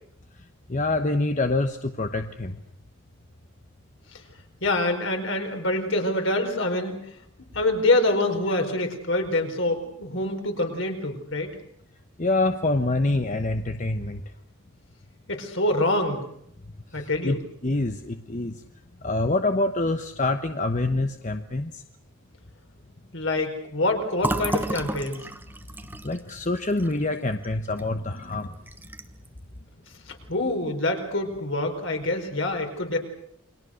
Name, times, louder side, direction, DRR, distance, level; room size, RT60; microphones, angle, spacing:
voice 1, 0.7-2.6 12.2-14.2 16.9-17.4 17.6-18.6 19.0-21.8 26.0-28.5, left 2 dB, 35° left, 6 dB, 1.1 m, -26 dB
voice 2, 4.6-7.0 7.5-11.5 15.3-16.2 16.9-17.4 23.1-25.2 30.3-33.0, left 2 dB, 60° left, 4 dB, 4.8 m, -25 dB
Fill (with liquid), 24.2-27.9 28.2-28.3 28.7-29.3, right 1 dB, 10° right, 1.1 m, -32 dB
29.5 x 23.0 x 6.5 m, 0.69 s
head